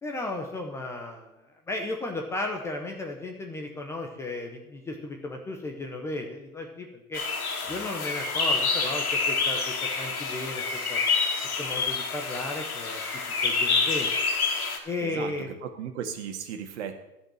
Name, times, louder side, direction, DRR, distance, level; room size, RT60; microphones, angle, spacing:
voice 1, 0.0-1.3 1.7-7.2 7.6-11.0 11.6-13.0 13.4-14.1 14.8-15.5, left 2 dB, 5° left, 2 dB, 0.5 m, -34 dB
sound 1, 7.1-14.8, left 4 dB, 75° left, 2.5 m, -27 dB
voice 2, 15.0-17.0, right 8 dB, 50° right, 5 dB, 1.9 m, -36 dB
13.0 x 5.5 x 8.7 m, 0.92 s
hypercardioid pair, 135°, 44 cm